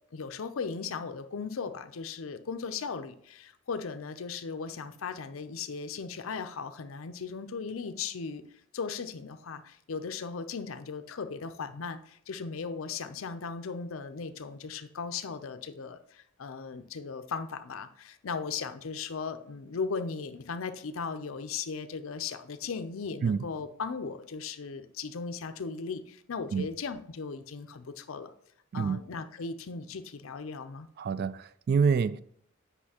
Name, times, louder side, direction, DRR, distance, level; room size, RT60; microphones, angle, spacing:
voice 1, 0.1-8.4 8.7-28.3 28.7-30.9, left 5 dB, 70° left, 0.5 m, -37 dB
voice 2, 31.0-32.2, right 5 dB, 50° right, 0.3 m, -27 dB
8.3 x 5.4 x 2.9 m
head